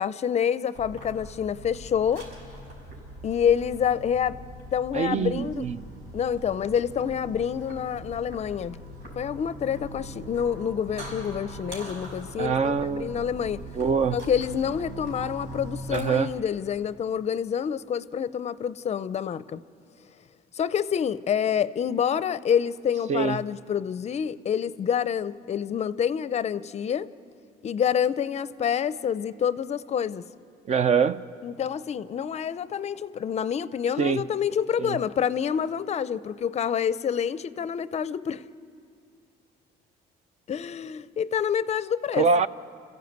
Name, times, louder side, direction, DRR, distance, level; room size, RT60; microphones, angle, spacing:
voice 1, 0.0-2.3 3.2-4.4 4.7-5.7 6.1-8.8 9.2-13.6 14.1-19.6 20.5-27.1 27.6-30.2 31.4-38.4 40.5-42.3, left 8 dB, 40° left, 0.5 m, -27 dB
sound 1, 0.7-16.0, right 1 dB, 90° right, 5.6 m, -41 dB
voice 2, 4.9-5.8 12.4-13.1 13.8-14.2 15.9-16.3 23.1-23.4 30.7-31.2 34.0-34.2 34.8-35.0 42.2-42.5, right 5 dB, 40° right, 0.6 m, -24 dB
28.5 x 15.0 x 8.0 m
cardioid pair, 110°, 17 cm